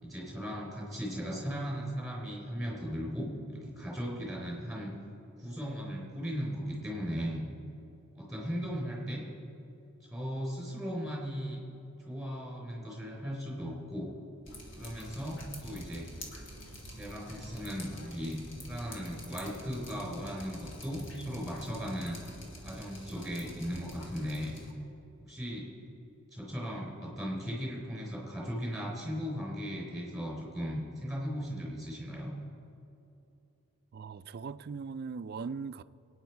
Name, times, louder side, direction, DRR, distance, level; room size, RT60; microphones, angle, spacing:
voice 1, 0.0-4.9 5.4-7.4 8.1-9.2 10.0-11.6 12.1-14.1 14.8-16.1 16.9-18.4 18.7-22.2 22.6-24.6 25.3-25.7 26.3-32.3, equal, ahead, 4.0 m, -37 dB
Drip, 14.4-24.7, left 1 dB, 60° left, 2.1 m, -47 dB
voice 2, 33.9-35.8, right 5 dB, 50° right, 0.4 m, -39 dB
23.5 x 9.4 x 4.6 m
head